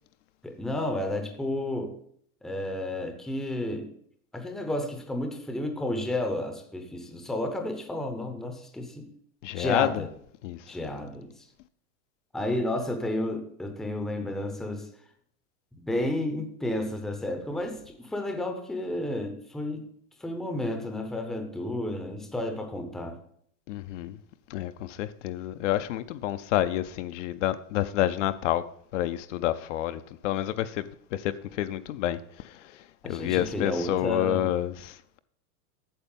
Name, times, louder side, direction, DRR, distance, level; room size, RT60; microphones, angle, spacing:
voice 1, 0.4-1.9 2.4-3.9 4.3-9.1 9.5-10.1 10.7-11.3 12.3-14.9 15.7-19.8 20.2-23.2 33.0-34.5, left 1 dB, ahead, 0.6 m, -31 dB
voice 2, 9.4-9.9 10.4-10.6 23.7-24.2 24.5-28.6 28.9-32.2 32.4-32.5 33.0-35.2, left 13 dB, 55° left, 0.6 m, -29 dB
8.8 x 7.0 x 5.3 m
supercardioid pair, 145°, 45 cm